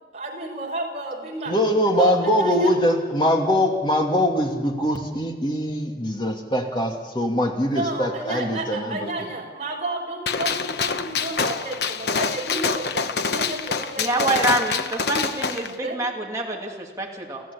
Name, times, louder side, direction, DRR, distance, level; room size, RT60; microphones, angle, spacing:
voice 1, 0.1-1.6 2.0-2.8 7.6-14.3 15.7-16.0, right 2 dB, 40° right, 0 dB, 5.4 m, -31 dB
voice 2, 1.5-9.1, equal, 25° left, 2 dB, 2.6 m, -22 dB
Gunshot gunfire, 10.3-15.7, left 5 dB, 70° left, 1.0 m, -26 dB
voice 3, 14.0-17.4, right 2 dB, 20° right, -2 dB, 2.7 m, -26 dB
30.0 x 14.0 x 8.6 m, 1.5 s
head